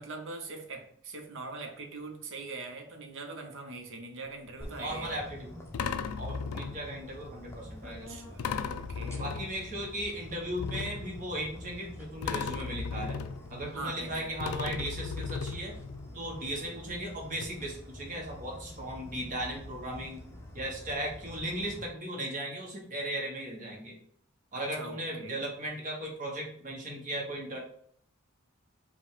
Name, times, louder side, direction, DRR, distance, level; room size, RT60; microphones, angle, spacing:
voice 1, 0.0-5.3 7.8-9.3 13.6-14.5 24.5-25.4, right 3 dB, 60° right, 4 dB, 0.8 m, -42 dB
sound 1, 4.3-4.5 5.7-7.1 8.4-9.9 10.6-11.8 12.2-14.1 14.4-16.1 17.0-17.1 17.4-17.5, left 5 dB, 85° left, 0.3 m, -36 dB
sound 2, 4.6-21.9, left 1 dB, 15° left, 0.6 m, -47 dB
voice 2, 4.8-5.5 6.2-8.1 9.2-13.2 13.5-15.7 16.1-20.2 20.5-24.0 24.5-27.6, right 1 dB, 40° right, -1 dB, 1.2 m, -37 dB
5.0 x 2.3 x 3.6 m, 0.64 s
head